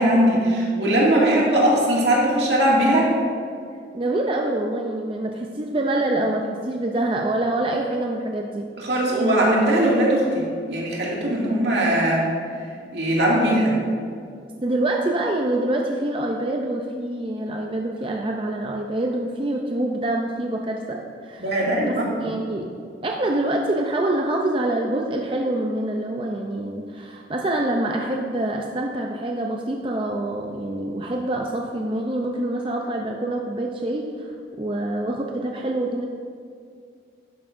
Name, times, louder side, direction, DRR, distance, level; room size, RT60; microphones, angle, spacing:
voice 1, 0.0-3.1 8.8-12.3 12.9-13.8 21.4-22.3, right 1 dB, 75° right, -4 dB, 2.2 m, -20 dB
voice 2, 3.9-8.7 14.6-21.4 21.8-21.9 22.2-22.7 23.0-34.3 34.6-36.1, right 1 dB, 30° right, 1 dB, 0.5 m, -25 dB
11.5 x 9.4 x 2.6 m, 2.2 s
head